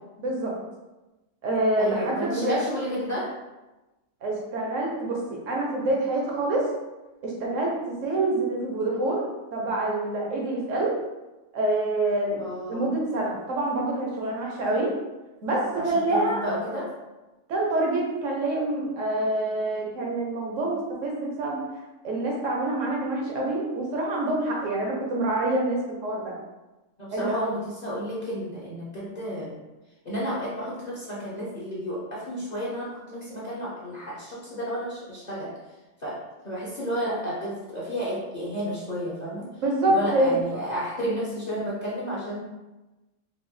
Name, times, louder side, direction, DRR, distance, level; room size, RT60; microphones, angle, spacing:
voice 1, 0.2-0.5 1.4-2.6 4.2-6.7 7.2-10.9 11.5-12.4 12.7-14.9 15.4-16.4 17.5-26.3 27.1-27.5 39.6-40.4, right 2 dB, 75° right, -2 dB, 1.2 m, -26 dB
voice 2, 1.8-3.3 12.4-12.9 15.7-16.9 27.0-29.6 30.0-35.5 36.0-36.2 36.4-39.4 39.9-42.4, equal, 40° left, -7 dB, 0.8 m, -32 dB
5.0 x 2.1 x 3.2 m, 1.1 s
omnidirectional pair, 1.3 m